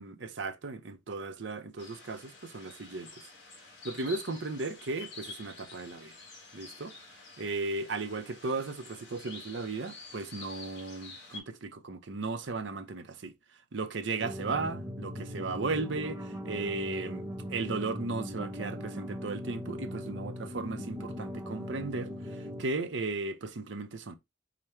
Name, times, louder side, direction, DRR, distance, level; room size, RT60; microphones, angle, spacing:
voice 1, 0.0-3.1 3.8-6.1 6.5-6.9 7.4-13.3 13.7-24.2, right 3 dB, 65° right, 0.6 m, -36 dB
sound 1, 1.8-11.4, left 4 dB, 55° left, 1.7 m, -49 dB
sound 2, 14.2-22.6, equal, 15° right, 0.7 m, -39 dB
5.0 x 2.2 x 4.3 m
head